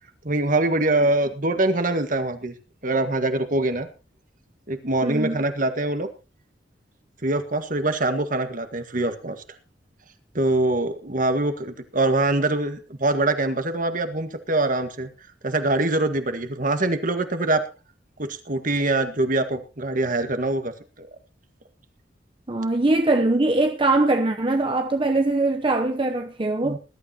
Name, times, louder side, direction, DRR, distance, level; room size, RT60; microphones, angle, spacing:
voice 1, 0.2-2.5 2.8-3.9 4.7-6.1 7.2-9.4 10.3-15.1 15.4-17.6 18.2-21.1 26.6-26.8, right 2 dB, 50° right, 1.6 m, -24 dB
voice 2, 5.0-5.4 22.5-26.8, right 2 dB, 30° right, 0.8 m, -22 dB
20.5 x 12.0 x 2.9 m
head